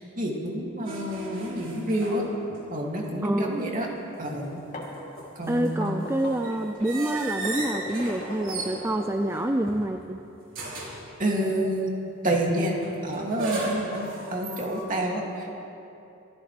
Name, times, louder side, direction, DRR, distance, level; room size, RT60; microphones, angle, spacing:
voice 1, 0.0-2.2 2.5-3.9 4.2-4.5 5.4-5.9 11.2-11.9 12.2-12.8 13.0-15.5, right 1 dB, 40° right, -2 dB, 2.5 m, -28 dB
sound 1, 0.8-2.8 3.0-3.1 4.6-9.9 10.5-11.1 12.8-14.8, right 2 dB, 70° right, 4.0 m, -36 dB
voice 2, 3.2-3.6 5.5-10.2, right 1 dB, 15° right, 5 dB, 0.4 m, -27 dB
sound 2, 4.5-9.7, left 1 dB, 35° left, 2.9 m, -39 dB
26.5 x 15.5 x 3.4 m, 2.9 s
head